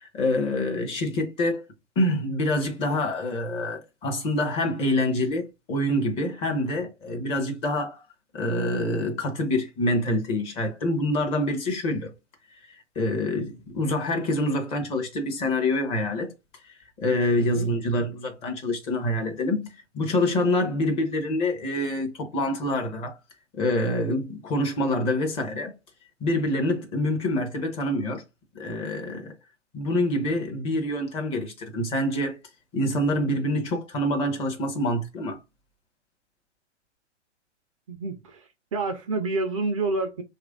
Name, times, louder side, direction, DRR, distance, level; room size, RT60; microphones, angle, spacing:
voice 1, 0.0-1.6 2.0-8.0 8.3-12.1 13.0-16.3 17.0-23.2 23.6-25.7 26.2-28.2 28.5-29.3 29.7-32.4 32.7-35.4, left 1 dB, 15° left, 0.6 m, -26 dB
voice 2, 17.4-17.7 37.9-40.2, right 3 dB, 30° right, 0.4 m, -29 dB
3.0 x 2.4 x 3.6 m
figure-of-eight pair, 115°, 35 cm